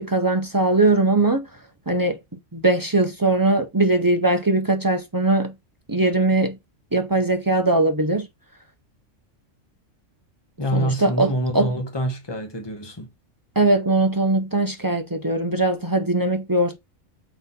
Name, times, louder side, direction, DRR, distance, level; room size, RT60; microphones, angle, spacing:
voice 1, 0.0-1.5 1.9-2.2 2.5-5.5 5.9-6.6 6.9-8.3 10.7-11.7 13.6-16.8, right 2 dB, 25° right, 0.5 m, -20 dB
voice 2, 10.6-13.1, right 1 dB, 20° left, 1.4 m, -26 dB
5.7 x 4.0 x 4.1 m
omnidirectional pair, 1.3 m